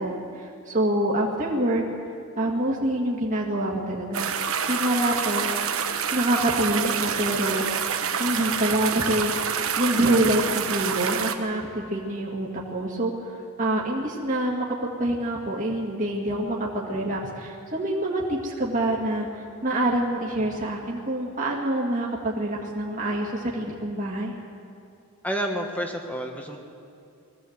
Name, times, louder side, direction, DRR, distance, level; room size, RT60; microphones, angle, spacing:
voice 1, 0.0-1.8 2.4-4.3 4.7-5.5 6.1-9.3 9.8-24.3, right 1 dB, 35° right, -3 dB, 2.0 m, -26 dB
sound 1, 4.1-11.3, right 7 dB, 70° right, 1.2 m, -27 dB
voice 2, 25.2-26.6, equal, 5° left, 2 dB, 1.6 m, -29 dB
21.0 x 15.5 x 8.0 m, 2.5 s
head